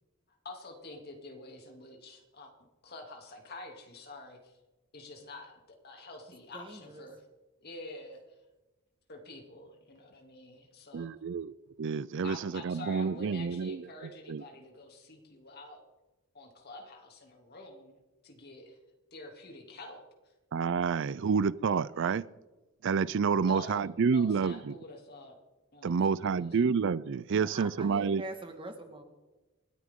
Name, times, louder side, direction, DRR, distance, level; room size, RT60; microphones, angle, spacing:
voice 1, 0.4-2.5 2.8-4.6 4.9-7.2 7.6-8.4 9.1-11.1 12.2-15.8 16.3-18.0 18.2-18.8 19.1-20.0 21.1-21.2 23.4-25.4 25.7-26.5, left 2 dB, 50° left, 2.8 m, -48 dB
voice 2, 6.5-7.1 27.3-29.0, right 1 dB, 25° right, 1.8 m, -44 dB
voice 3, 10.9-11.5 11.8-14.4 20.5-22.2 22.8-24.7 25.8-28.2, right 5 dB, 60° right, 0.4 m, -29 dB
27.5 x 9.8 x 3.8 m
head